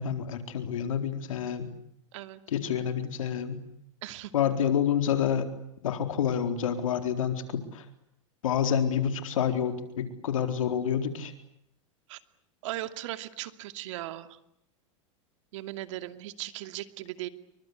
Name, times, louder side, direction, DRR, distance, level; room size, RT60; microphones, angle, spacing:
voice 1, 0.0-1.7 2.5-3.6 4.3-5.5 5.8-7.8 8.4-11.3, left 8 dB, 85° left, 8 dB, 4.1 m, -28 dB
voice 2, 4.0-4.3 12.1-12.2 12.6-14.4 15.5-17.3, right 15 dB, 70° right, 10 dB, 2.5 m, -38 dB
28.5 x 24.5 x 8.2 m, 0.79 s
supercardioid pair, 125°, 17 cm